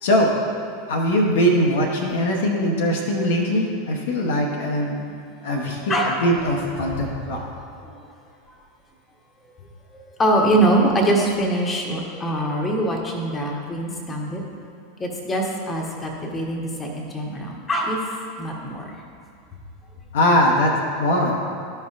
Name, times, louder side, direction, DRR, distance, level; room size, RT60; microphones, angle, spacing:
voice 1, 0.0-0.3 0.9-5.0 5.4-7.4 20.1-21.4, equal, 60° left, -1 dB, 0.9 m, -21 dB
voice 2, 6.8-7.1 7.8-8.0 9.9-14.4 15.0-18.8, right 1 dB, 20° left, -1 dB, 1.2 m, -23 dB
13.0 x 5.3 x 2.5 m, 2.3 s
figure-of-eight pair, 85°, 0 cm